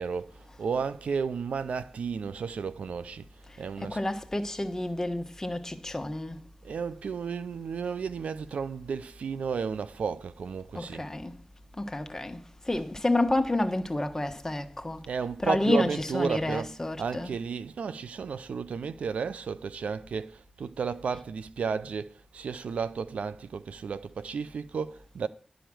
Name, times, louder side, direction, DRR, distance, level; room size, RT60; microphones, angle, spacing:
voice 1, 0.0-4.0 6.6-11.1 15.1-25.3, right 5 dB, 90° right, 0.5 m, -33 dB
voice 2, 3.8-6.4 10.7-11.3 11.8-15.1 15.4-17.3, left 1 dB, 20° left, 1.3 m, -30 dB
11.0 x 5.0 x 7.6 m
cardioid pair, 55°, 2 cm